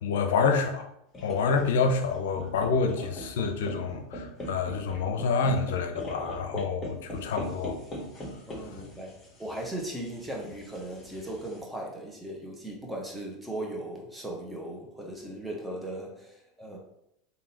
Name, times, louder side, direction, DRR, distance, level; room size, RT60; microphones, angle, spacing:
voice 1, 0.0-0.9 1.2-7.8 8.7-8.8, left 5 dB, 75° left, 5 dB, 0.6 m, -27 dB
sound 1, 1.1-11.6, equal, 25° left, 1.5 m, -41 dB
voice 2, 8.5-16.8, right 1 dB, 5° right, -1 dB, 1.2 m, -38 dB
3.6 x 2.7 x 4.2 m, 0.77 s
hypercardioid pair, 90°, 0 cm